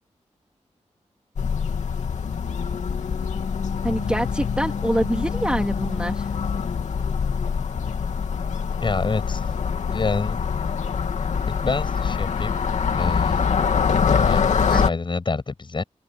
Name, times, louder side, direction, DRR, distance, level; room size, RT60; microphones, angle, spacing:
sound 1, 1.4-14.9, left 6 dB, 80° left, 2.7 m, -24 dB
voice 1, 3.8-6.3 14.7-14.9, right 1 dB, 10° right, 2.6 m, -25 dB
voice 2, 8.8-9.5 9.9-10.4 11.6-12.6 12.9-13.4 14.1-15.8, left 3 dB, 40° left, 7.5 m, -27 dB
wide cardioid pair, 90°, 12 cm